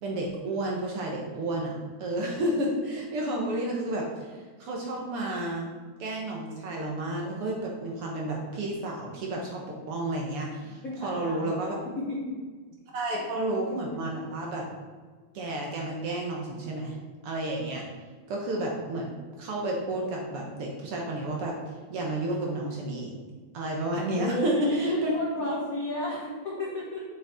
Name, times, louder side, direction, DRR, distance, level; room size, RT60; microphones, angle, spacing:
voice 1, 0.0-5.7 6.0-9.6 9.9-11.8 12.9-14.7 15.3-17.0 17.2-17.8 18.3-21.6 21.9-23.1 23.5-25.1 25.4-25.6, right 1 dB, 60° right, -1 dB, 1.8 m, -31 dB
voice 2, 10.8-11.6 11.9-12.4 24.1-27.0, left 1 dB, 75° left, -4 dB, 0.8 m, -32 dB
7.0 x 6.4 x 3.6 m, 1.5 s
omnidirectional pair, 3.4 m